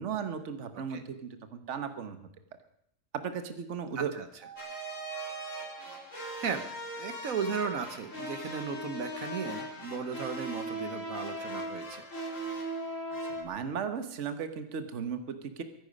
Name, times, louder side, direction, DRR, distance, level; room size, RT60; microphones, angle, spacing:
voice 1, 0.0-2.2 3.1-4.1 13.3-15.6, right 7 dB, 60° right, 9 dB, 1.4 m, -36 dB
voice 2, 4.0-4.3 6.4-6.6 7.0-12.0, right 6 dB, 80° right, 9 dB, 1.5 m, -36 dB
sound 1, 4.4-6.0, right 9 dB, 35° right, 3.2 m, -48 dB
sound 2, 4.6-13.4, right 1 dB, 65° left, 3.6 m, -39 dB
23.0 x 10.0 x 5.3 m, 0.71 s
omnidirectional pair, 1.4 m